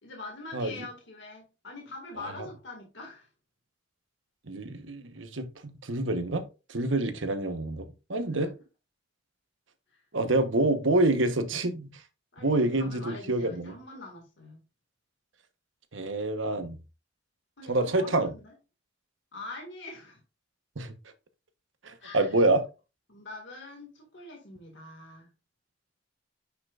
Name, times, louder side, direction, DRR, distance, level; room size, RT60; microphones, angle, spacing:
voice 1, 0.0-3.3 9.9-10.0 12.3-14.6 17.6-18.5 19.3-20.2 22.0-22.3 23.1-25.3, left 2 dB, 70° left, 2.1 m, -44 dB
voice 2, 0.5-0.8 2.2-2.3 4.5-6.4 6.7-8.5 10.1-12.0 12.4-13.7 15.9-16.8 17.7-18.3 20.8-20.9 21.8-22.6, right 2 dB, 85° right, 1.1 m, -27 dB
10.0 x 5.8 x 2.5 m
head